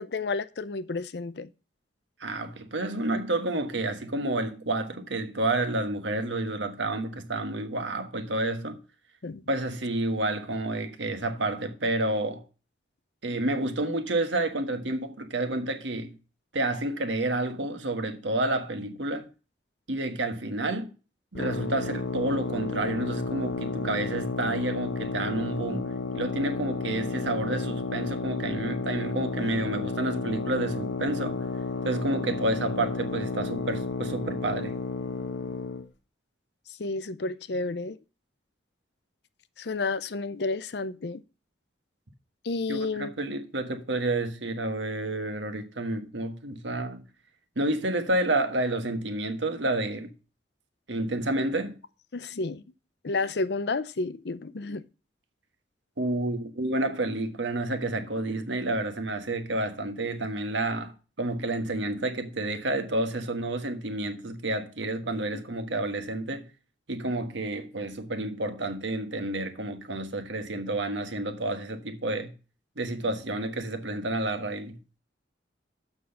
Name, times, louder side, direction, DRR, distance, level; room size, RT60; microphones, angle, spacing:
voice 1, 0.0-1.5 9.2-9.4 13.3-13.4 36.8-38.0 39.6-41.2 42.4-43.1 52.1-52.6 53.0-54.8, left 3 dB, 60° left, 0.6 m, -31 dB
voice 2, 2.2-8.8 9.5-12.4 13.2-16.2 16.5-19.3 19.9-20.9 21.3-31.4 31.8-34.8 42.7-47.0 47.5-50.1 50.9-51.7 56.0-66.5 66.9-72.3 72.8-74.8, right 2 dB, 80° right, 1.4 m, -30 dB
sound 1, 21.3-35.9, left 3 dB, 80° left, 1.1 m, -32 dB
7.3 x 6.2 x 5.8 m
head